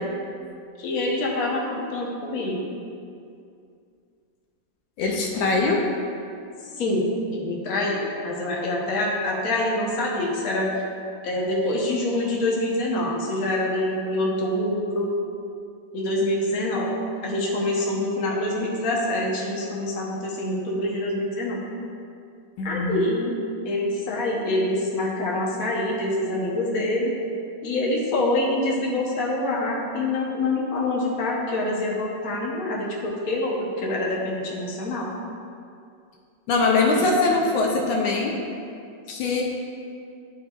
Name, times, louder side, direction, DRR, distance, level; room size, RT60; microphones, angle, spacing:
voice 1, 0.8-2.6 6.8-10.7 11.2-15.1 15.9-16.9 17.2-21.6 22.6-23.3 23.6-27.1 27.6-35.1 37.0-37.1 39.1-39.4, left 1 dB, 55° left, -3 dB, 1.3 m, -26 dB
voice 2, 5.0-5.9 22.6-22.9 36.5-38.4 39.1-39.4, left 3 dB, 80° left, 0 dB, 1.4 m, -22 dB
10.5 x 4.6 x 2.4 m, 2.4 s
omnidirectional pair, 2.1 m